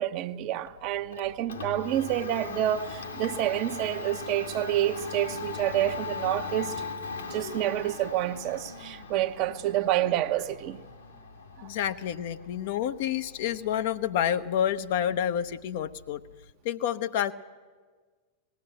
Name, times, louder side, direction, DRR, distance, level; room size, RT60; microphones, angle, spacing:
voice 1, 0.0-6.7 7.3-10.8 11.6-11.7, right 12 dB, 40° right, 0.7 m, -28 dB
Domestic sounds home sounds, 0.7-16.5, left 4 dB, 75° left, 1.9 m, -40 dB
voice 2, 11.6-16.2 16.6-17.3, left 10 dB, 50° left, 0.7 m, -29 dB
19.5 x 15.5 x 8.9 m
figure-of-eight pair, 90°, 0 cm